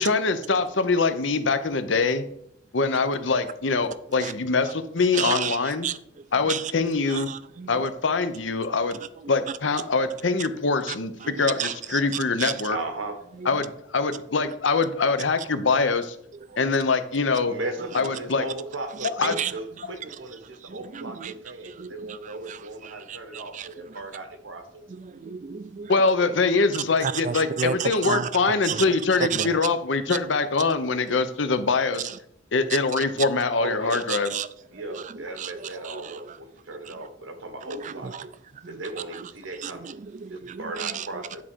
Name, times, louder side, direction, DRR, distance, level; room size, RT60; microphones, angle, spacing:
voice 1, 0.0-2.2 2.7-5.9 6.3-7.3 7.7-9.0 9.3-12.8 13.5-16.2 16.6-17.5 17.9-18.4 19.2-19.4 25.9-32.1 32.5-34.3, left 4 dB, 70° left, 0.8 m, -24 dB
voice 2, 5.1-5.6 5.8-6.0 6.5-6.7 7.1-7.7 11.2-12.0 12.4-12.5 14.4-14.5 16.5-16.6 19.4-19.5 20.6-21.3 21.8-22.6 22.8-23.7 25.0-25.9 27.0-28.3 28.6-28.9 29.3-29.6 33.0-33.1 34.1-34.5 34.9-35.0 35.4-35.5 35.8-36.0 37.7-38.2 38.6-38.8 39.2-39.3 39.6-41.0, right 7 dB, 40° right, 0.4 m, -32 dB
voice 3, 12.7-13.2 17.5-24.8 26.2-26.3 33.6-34.0 34.7-38.2 38.7-39.9 40.3-41.4, right 2 dB, 85° right, 1.4 m, -36 dB
10.5 x 3.7 x 6.2 m
head